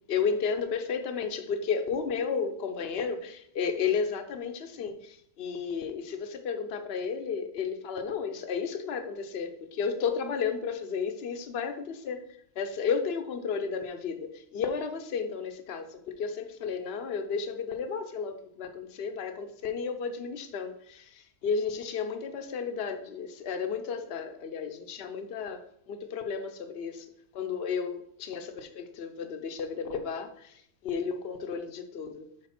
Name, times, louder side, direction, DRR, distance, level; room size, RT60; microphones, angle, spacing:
voice 1, 0.1-12.2 12.6-25.6 25.9-27.1 27.3-32.3, left 6 dB, 50° left, 7 dB, 0.8 m, -33 dB
7.8 x 3.4 x 5.8 m, 0.69 s
omnidirectional pair, 1.7 m